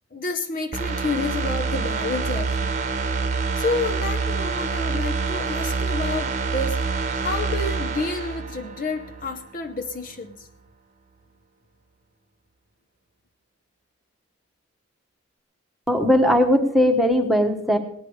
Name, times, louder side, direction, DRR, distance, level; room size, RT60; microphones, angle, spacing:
voice 1, 0.1-2.7 3.6-6.8 7.2-10.5, left 3 dB, 40° left, 5 dB, 0.8 m, -29 dB
sound 1, 0.7-9.4 9.7-9.9, right 4 dB, 35° right, 1.0 m, -26 dB
voice 2, 15.9-17.8, equal, ahead, 3 dB, 1.3 m, -19 dB
18.5 x 10.5 x 4.8 m, 0.68 s
head